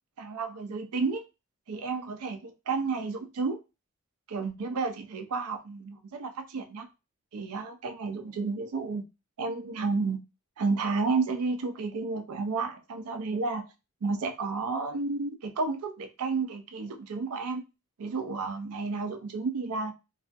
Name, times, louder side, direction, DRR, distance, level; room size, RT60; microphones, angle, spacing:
voice 1, 0.2-1.2 1.7-3.6 4.3-6.9 7.3-9.0 9.4-10.2 10.6-13.6 14.0-17.6 18.0-19.9, right 4 dB, 85° right, 0.5 m, -31 dB
2.4 x 2.3 x 2.5 m
head